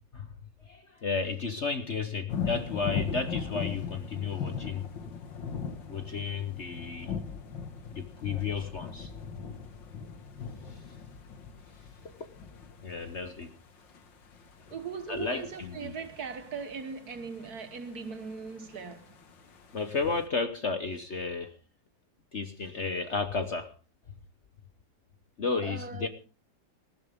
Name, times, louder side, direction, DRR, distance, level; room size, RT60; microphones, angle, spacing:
voice 1, 0.7-4.9 5.9-7.1 7.9-9.1 10.7-10.8 12.2-12.3 12.8-13.5 15.1-15.9 19.7-21.5 22.3-23.7 25.4-26.1, left 4 dB, 45° left, 1.1 m, -33 dB
sound 1, 2.3-20.3, left 6 dB, 75° left, 2.3 m, -40 dB
voice 2, 14.7-19.1 25.6-26.1, right 5 dB, 55° right, 1.8 m, -39 dB
19.5 x 15.0 x 3.5 m
omnidirectional pair, 2.0 m